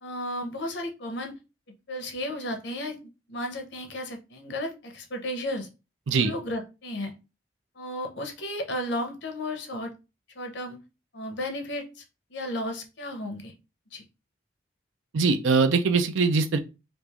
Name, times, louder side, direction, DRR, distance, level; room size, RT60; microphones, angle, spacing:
voice 1, 0.0-1.3 1.9-3.0 3.3-5.7 6.2-7.1 7.8-9.9 10.3-10.8 11.1-12.0 12.3-13.5 13.9-14.0, left 1 dB, 65° left, 0.8 m, -33 dB
voice 2, 15.1-16.6, right 4 dB, 80° right, 0.5 m, -22 dB
3.1 x 2.5 x 3.4 m
head